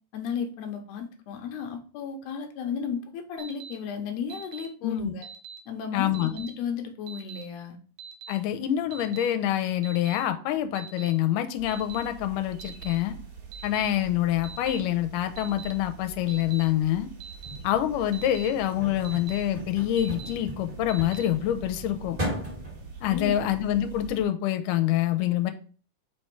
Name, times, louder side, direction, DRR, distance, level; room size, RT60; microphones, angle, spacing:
voice 1, 0.1-5.3 5.7-7.8 23.1-23.4, left 6 dB, 70° left, 4 dB, 1.8 m, -34 dB
Alarm, 3.4-3.7 4.3-4.7 5.2-5.6 6.1-6.5 7.1-7.4 8.0-8.3 8.9-9.3 9.8-10.2 10.8-11.1 11.7-12.0 12.6-13.0 13.5-13.9 14.4-14.8 15.4-15.7 16.3-16.6 17.2-17.6 18.1-18.5 19.0-19.4 20.0-20.3 20.9-21.3, right 7 dB, 85° right, 2.2 m, -43 dB
voice 2, 4.8-5.1 5.9-6.3 8.3-13.2 13.6-17.1 17.6-22.2 23.0-25.5, left 12 dB, 90° left, 8 dB, 2.2 m, -26 dB
sound 1, 11.6-24.2, right 5 dB, 55° right, 2.0 m, -45 dB
sound 2, 17.4-22.9, equal, 25° right, 1.2 m, -38 dB
5.1 x 4.3 x 4.5 m, 0.40 s
omnidirectional pair, 3.7 m